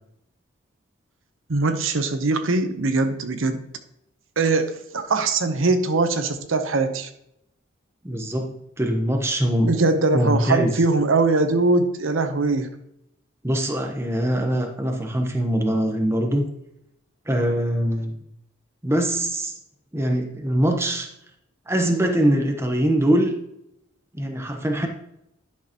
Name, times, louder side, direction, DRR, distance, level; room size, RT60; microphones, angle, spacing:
voice 1, 1.5-3.6 4.4-7.1 9.7-12.7, right 3 dB, 80° right, 8 dB, 0.8 m, -21 dB
voice 2, 8.0-9.7 10.1-10.7 13.4-16.4 17.3-18.2 18.8-19.5 19.9-21.1 21.7-23.3 24.1-24.9, right 1 dB, 15° right, 3 dB, 0.9 m, -22 dB
11.0 x 6.5 x 2.9 m, 0.80 s
head